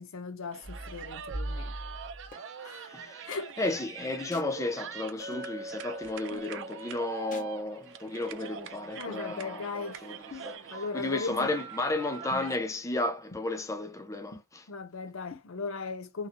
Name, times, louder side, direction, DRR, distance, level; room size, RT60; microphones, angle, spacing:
voice 1, 0.0-1.7 2.6-2.9 3.3-3.5 9.0-10.1 10.7-11.5 14.7-16.3, left 4 dB, 70° left, 0.6 m, -38 dB
sound 1, 0.5-12.6, right 8 dB, 60° right, 0.5 m, -44 dB
sound 2, 0.6-2.3 3.3-3.4 4.3-4.5 5.3-5.5 6.3-6.5 7.3-7.5 8.3-8.5 9.3-9.4 10.3-10.6 11.3-11.7 12.3-12.7 13.3-13.4 14.3-14.4 15.3-15.4, equal, 40° left, 1.1 m, -41 dB
voice 2, 2.3-14.7, left 2 dB, 15° left, 0.5 m, -34 dB
Chink clink, 5.2-9.4, right 1 dB, 10° right, 1.2 m, -45 dB
3.0 x 2.7 x 2.5 m
head